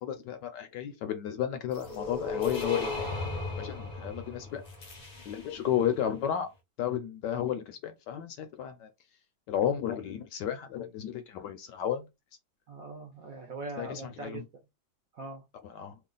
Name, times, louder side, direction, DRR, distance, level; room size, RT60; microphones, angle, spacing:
voice 1, 0.0-2.9 3.6-4.6 5.2-6.5 6.8-8.9 9.5-12.1 13.8-14.4 15.6-16.0, left 10 dB, 75° left, 1.1 m, -33 dB
sound 1, 1.7-5.7, left 3 dB, 45° left, 0.5 m, -36 dB
voice 2, 12.7-14.4 15.1-15.4, right 2 dB, 65° right, 0.9 m, -41 dB
3.1 x 2.3 x 3.8 m
omnidirectional pair, 2.1 m